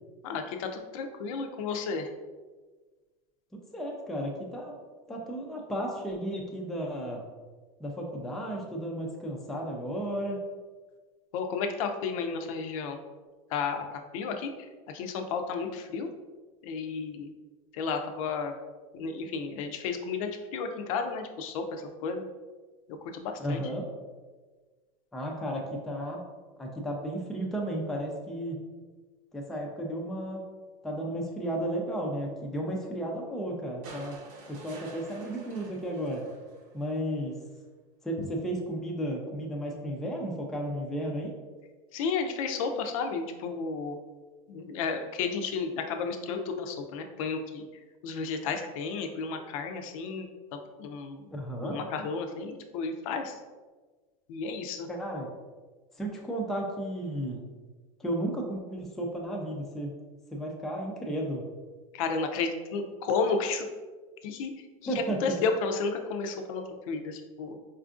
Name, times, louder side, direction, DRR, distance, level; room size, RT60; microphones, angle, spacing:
voice 1, 0.2-2.1 11.3-13.0 13.5-16.1 16.6-17.3 17.7-18.5 18.9-22.2 23.0-23.6 38.2-38.3 41.9-44.0 44.5-47.6 48.0-51.3 51.6-53.4 54.3-54.9 61.9-63.7 64.2-64.7 64.9-67.6, left 5 dB, 70° left, 6 dB, 0.4 m, -32 dB
voice 2, 3.7-4.8 5.1-7.2 7.8-10.4 23.4-23.9 25.1-26.2 26.6-28.6 29.3-30.4 30.8-34.2 34.5-36.2 36.7-37.4 38.0-41.4 51.3-51.8 54.9-55.3 55.9-57.4 58.0-59.9 60.3-61.5 64.9-65.4, right 1 dB, ahead, -1 dB, 0.3 m, -33 dB
sound 1, 33.8-37.1 38.5-38.6, right 3 dB, 70° right, 0.8 m, -49 dB
4.3 x 2.4 x 2.4 m, 1.3 s
supercardioid pair, 150°, 18 cm